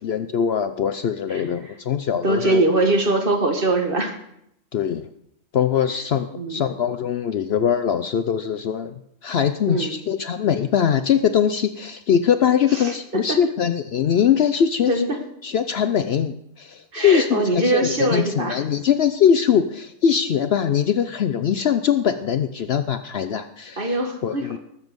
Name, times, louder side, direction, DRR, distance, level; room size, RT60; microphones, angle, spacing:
voice 1, 0.0-2.6 4.7-5.0 5.5-8.9 9.2-14.9 15.4-23.9 24.2-24.6, left 8 dB, 60° left, 10 dB, 0.8 m, -21 dB
voice 2, 1.3-1.8 2.1-4.2 6.3-6.6 9.7-10.0 12.7-13.4 14.9-15.2 16.9-18.6 23.8-24.6, right 2 dB, 45° right, 4 dB, 1.9 m, -23 dB
19.5 x 7.4 x 5.3 m, 0.76 s
omnidirectional pair, 1.4 m